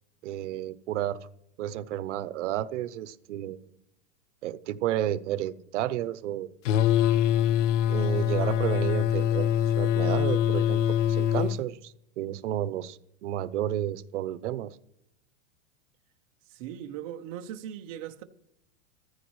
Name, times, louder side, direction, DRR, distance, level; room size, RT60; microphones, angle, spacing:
voice 1, 0.2-1.3 1.6-3.7 4.4-6.5 7.9-9.5 9.8-14.8, right 12 dB, 70° right, 0.8 m, -31 dB
sound 1, 6.6-11.6, left 10 dB, 75° left, 0.6 m, -24 dB
voice 2, 16.5-18.2, right 10 dB, 30° right, 0.6 m, -39 dB
15.0 x 14.5 x 3.1 m
supercardioid pair, 175°, 38 cm